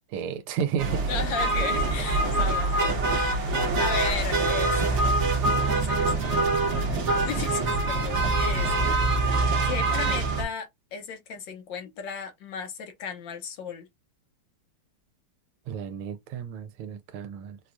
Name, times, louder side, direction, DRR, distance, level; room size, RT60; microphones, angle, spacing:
voice 1, 0.1-1.1 15.7-17.6, right 8 dB, 80° right, 1.4 m, -32 dB
sound 1, 0.8-10.4, right 2 dB, 50° right, 0.8 m, -24 dB
voice 2, 1.1-5.1 5.7-8.7 9.6-13.9, left 6 dB, 70° left, 1.3 m, -35 dB
4.5 x 2.3 x 2.4 m
omnidirectional pair, 2.4 m